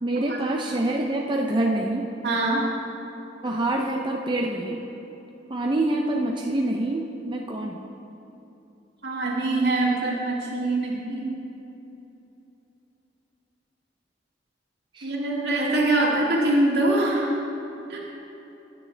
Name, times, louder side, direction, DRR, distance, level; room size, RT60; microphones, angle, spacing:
voice 1, 0.0-2.1 3.4-4.8 5.5-7.9 14.9-15.1, right 1 dB, 25° right, 0 dB, 0.6 m, -26 dB
voice 2, 2.2-2.7 9.0-11.3 15.0-17.3 17.9-18.0, right 2 dB, 65° right, -3 dB, 2.0 m, -23 dB
16.0 x 9.3 x 3.3 m, 3.0 s
head